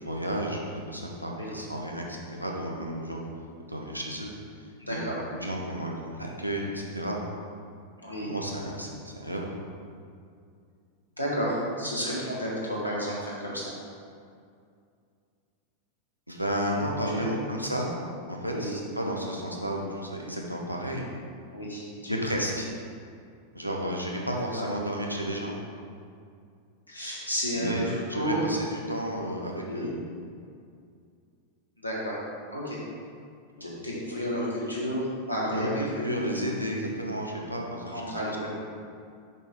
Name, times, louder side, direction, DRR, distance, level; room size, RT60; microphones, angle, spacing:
voice 1, 0.0-0.6 0.9-3.3 3.7-4.3 4.9-5.0 5.3-7.2 8.2-9.5 16.3-17.9 18.3-21.0 22.1-22.7 23.5-25.6 27.5-29.9 33.6-33.7 35.5-38.2, equal, 90° right, -1 dB, 0.9 m, -32 dB
voice 2, 4.8-5.2 8.0-8.3 11.2-13.7 17.1-17.4 18.4-18.7 21.5-22.2 24.5-24.7 26.9-28.4 29.7-29.9 31.8-32.2 32.5-32.8 33.6-36.2 37.9-38.5, equal, 90° left, -6 dB, 1.6 m, -31 dB
6.7 x 5.3 x 3.6 m, 2.3 s
figure-of-eight pair, 90°, 0 cm